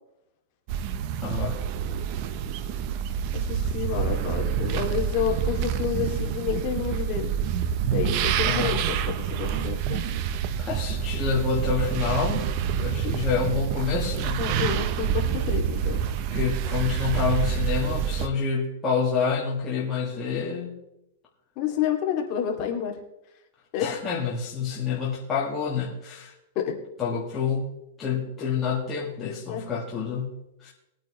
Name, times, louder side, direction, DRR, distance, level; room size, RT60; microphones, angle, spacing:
sound 1, 0.7-18.3, right 8 dB, 40° right, 0.7 m, -27 dB
voice 1, 1.2-1.6 8.4-8.8 10.6-14.4 16.3-20.8 23.8-26.3 27.0-27.7 28.0-30.7, left 6 dB, 15° left, -5 dB, 1.9 m, -28 dB
voice 2, 3.3-7.3 7.9-10.0 13.0-13.2 14.4-16.0 21.6-22.9 23.7-23.9 26.6-26.8 29.5-29.6, left 8 dB, 35° left, 1 dB, 2.5 m, -29 dB
21.5 x 8.9 x 3.2 m, 0.88 s
supercardioid pair, 160°, 0 cm